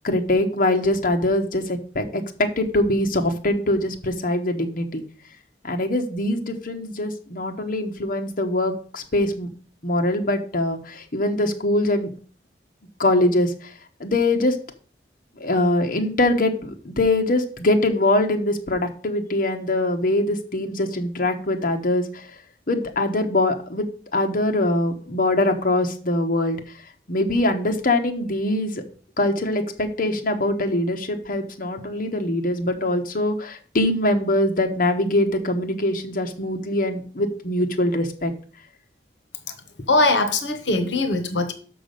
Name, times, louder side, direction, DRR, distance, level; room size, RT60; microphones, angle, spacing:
voice 1, 0.0-5.0 5.6-9.5 9.8-12.1 13.0-13.7 14.0-14.6 15.4-22.3 22.7-23.8 24.1-26.6 27.1-28.8 29.2-38.3, left 1 dB, 50° left, 4 dB, 1.1 m, -23 dB
voice 2, 39.9-41.5, left 2 dB, 85° left, 10 dB, 1.0 m, -21 dB
6.2 x 6.1 x 6.6 m, 0.42 s
head